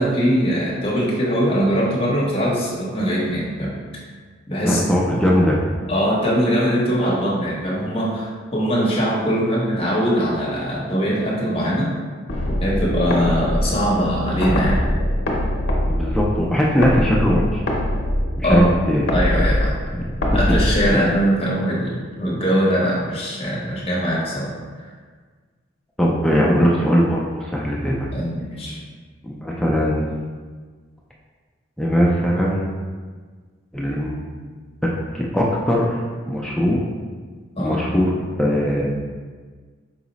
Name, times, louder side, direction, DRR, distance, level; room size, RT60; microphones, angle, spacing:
voice 1, 0.0-4.0 4.5-4.8 5.9-11.9 12.6-14.8 18.4-18.7 19.1-19.7 20.3-24.5 24.8-24.9 28.1-28.8 37.6-37.8, equal, 30° left, -5 dB, 0.9 m, -21 dB
voice 2, 4.6-5.6 15.9-17.6 18.4-19.1 19.9-20.0 26.0-28.1 29.2-30.2 31.8-32.7 33.7-34.3 35.1-36.0 36.3-36.8 37.6-38.9, equal, 5° left, -4 dB, 0.3 m, -20 dB
sound 1, 12.3-21.3, left 1 dB, 75° left, 0.6 m, -23 dB
4.7 x 2.1 x 3.9 m, 1.5 s
head